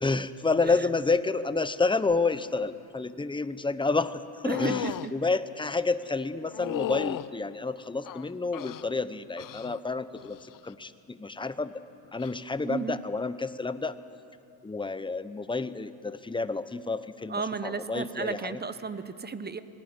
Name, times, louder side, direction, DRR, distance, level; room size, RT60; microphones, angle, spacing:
voice 1, 0.0-11.8 12.1-14.0 14.6-18.6, left 3 dB, 10° left, 12 dB, 0.9 m, -29 dB
voice 2, 4.4-5.1 12.7-13.0 17.3-19.6, right 5 dB, 20° right, 12 dB, 1.1 m, -33 dB
sound 1, 4.5-5.1 6.5-7.3 8.0-8.9 9.4-9.8 10.1-10.6 12.1-12.3, left 13 dB, 45° left, 0.7 m, -35 dB
25.5 x 19.5 x 9.8 m, 2.7 s
cardioid pair, 105°, 48 cm